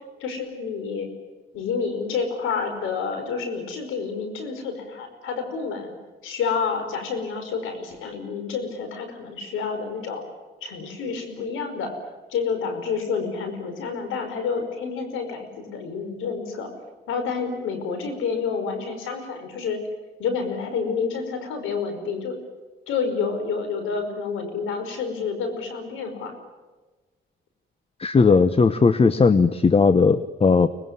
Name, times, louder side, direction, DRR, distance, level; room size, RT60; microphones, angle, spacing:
voice 1, 0.2-1.1 1.5-6.0 6.2-10.2 10.6-11.9 12.3-16.7 17.1-19.8 20.2-22.4 22.9-26.3, left 5 dB, 90° left, 7 dB, 5.3 m, -29 dB
voice 2, 28.0-30.7, left 4 dB, 30° left, 13 dB, 1.1 m, -17 dB
24.5 x 20.5 x 9.6 m, 1.3 s
cardioid pair, 90°, 20 cm